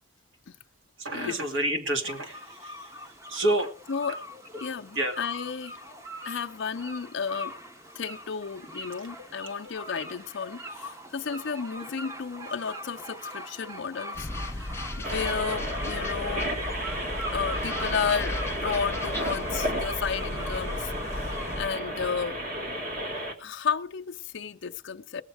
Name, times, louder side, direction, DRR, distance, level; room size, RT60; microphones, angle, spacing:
voice 1, 1.0-3.7 4.1-4.2 4.5-4.6 4.9-5.2 9.2-9.3 9.6-9.7, right 1 dB, 65° right, 2.5 m, -29 dB
sound 1, 2.1-21.6, equal, 15° right, 0.9 m, -41 dB
voice 2, 3.9-4.2 4.6-5.8 6.2-7.6 7.9-16.6 17.3-22.4 23.4-25.2, left 6 dB, 60° left, 0.5 m, -33 dB
sound 2, 14.1-21.7, left 1 dB, 10° left, 0.6 m, -36 dB
sound 3, 15.0-23.3, equal, 45° right, 2.0 m, -33 dB
20.5 x 7.1 x 4.9 m
head